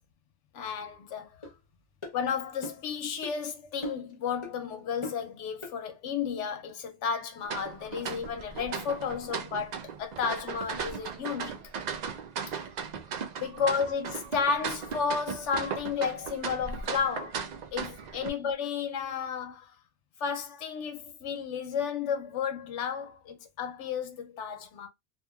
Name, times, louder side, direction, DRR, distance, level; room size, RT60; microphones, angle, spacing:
voice 1, 0.5-1.5 2.1-11.6 13.4-17.4 17.7-19.7 20.2-24.9, left 6 dB, 90° left, 1.0 m, -32 dB
sound 1, 1.4-1.5 2.0-2.2 2.6-2.9 3.2-3.4 3.8-4.1 4.4-4.6 5.0-5.3 5.6-5.8, left 1 dB, 30° left, 0.8 m, -39 dB
sound 2, 7.5-18.3, right 6 dB, 60° right, 0.4 m, -37 dB
2.8 x 2.4 x 2.2 m
omnidirectional pair, 1.2 m